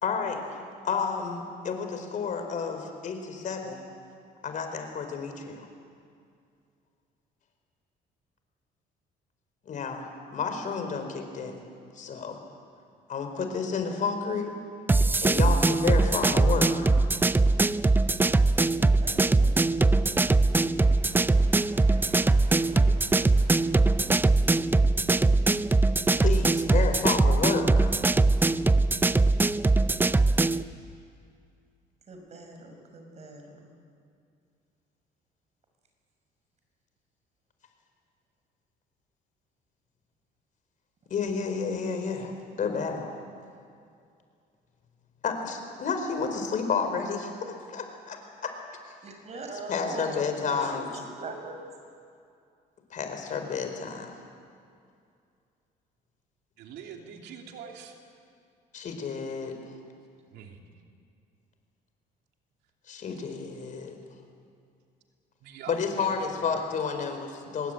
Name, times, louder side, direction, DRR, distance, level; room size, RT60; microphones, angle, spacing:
voice 1, 0.0-3.8 4.4-5.7 9.7-11.6 12.0-12.4 13.1-14.6 15.2-16.9 22.8-23.0 26.2-27.9 41.1-42.3 42.6-43.1 45.2-48.5 49.5-50.9 52.9-54.2 58.7-59.7 62.9-63.9 65.7-67.7, left 5 dB, 50° left, 5 dB, 4.3 m, -31 dB
sound 1, 14.9-30.6, right 3 dB, 10° right, 0.5 m, -22 dB
voice 2, 19.0-19.8 20.4-24.1 26.5-26.7 27.0-27.7 32.1-33.7 49.0-50.8 51.1-51.7, right 3 dB, 40° right, 4 dB, 5.9 m, -44 dB
voice 3, 56.6-58.0 60.3-60.6 65.4-66.4, right 7 dB, 80° right, 2 dB, 2.9 m, -44 dB
25.0 x 20.5 x 9.0 m, 2.4 s
cardioid pair, 110°, 17 cm